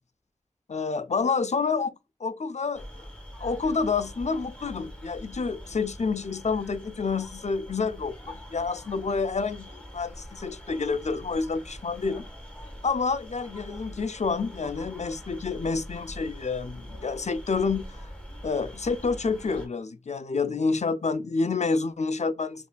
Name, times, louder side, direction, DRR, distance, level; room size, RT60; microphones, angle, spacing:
voice 1, 0.7-1.9 2.2-3.1 3.4-12.3 12.8-18.1 18.4-22.7, left 4 dB, 60° left, 0.4 m, -28 dB
sound 1, 2.7-19.7, equal, 10° left, 1.6 m, -43 dB
5.2 x 2.5 x 2.2 m
wide cardioid pair, 55°, 13 cm